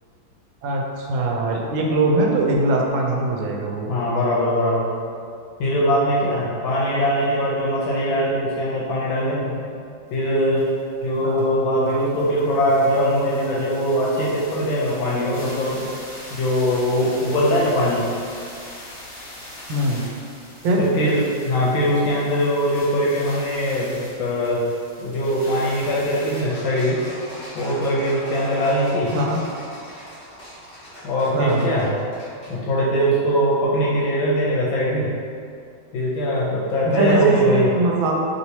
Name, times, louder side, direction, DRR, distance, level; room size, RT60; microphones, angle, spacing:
voice 1, 0.6-3.9 11.2-11.5 19.7-20.1 20.6-20.9 29.1-29.4 31.3-31.7 36.8-38.3, right 2 dB, 80° right, -1 dB, 1.3 m, -21 dB
voice 2, 3.9-4.9 5.6-9.6 10.1-10.7 11.0-15.8 16.3-18.1 20.8-24.6 25.0-27.0 27.5-29.1 31.0-31.9 32.5-35.1 35.9-37.7, equal, 80° left, -6 dB, 1.4 m, -21 dB
sound 1, 10.1-10.2 10.4-26.4, left 1 dB, 55° left, 1.5 m, -41 dB
sound 2, 26.3-32.5, equal, 40° left, 0.9 m, -39 dB
3.3 x 2.9 x 2.7 m, 2.3 s
omnidirectional pair, 2.2 m